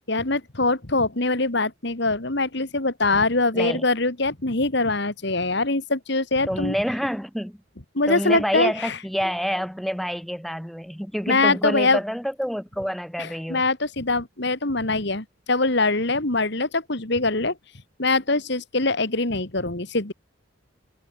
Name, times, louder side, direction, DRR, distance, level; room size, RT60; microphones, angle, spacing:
voice 1, 0.1-6.7 7.9-9.0 11.3-12.0 13.2-17.5 18.0-20.1, left 3 dB, 55° left, 2.1 m, -23 dB
voice 2, 3.5-3.8 6.5-7.6 8.1-13.6, equal, ahead, 7.2 m, -28 dB
head